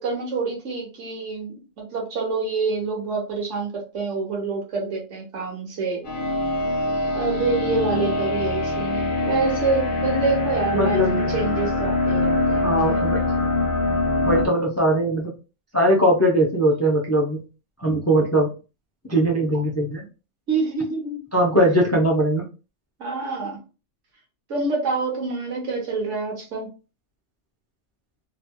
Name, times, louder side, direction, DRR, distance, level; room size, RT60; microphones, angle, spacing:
voice 1, 0.0-6.3 7.1-13.1 20.5-21.2 23.0-23.6 24.5-26.7, right 4 dB, 75° right, 0 dB, 1.4 m, -27 dB
sound 1, 6.0-14.4, left 2 dB, 45° left, 0.9 m, -23 dB
voice 2, 10.7-11.4 12.6-13.2 14.2-15.3 15.7-17.4 17.8-18.5 19.1-20.0 21.3-22.4, right 1 dB, 25° left, -1 dB, 0.3 m, -20 dB
2.9 x 2.9 x 2.2 m, 0.32 s
omnidirectional pair, 1.3 m